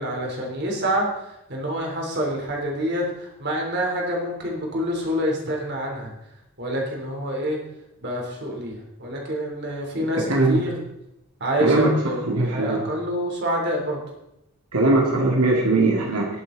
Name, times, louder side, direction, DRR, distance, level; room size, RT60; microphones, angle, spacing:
voice 1, 0.0-6.1 6.6-7.6 8.0-10.8 11.4-14.0, equal, 50° right, -1 dB, 3.5 m, -27 dB
voice 2, 10.3-10.6 11.6-11.9 12.3-12.8 14.7-16.3, right 2 dB, 85° right, -1 dB, 2.3 m, -20 dB
19.5 x 8.3 x 4.0 m, 0.86 s
head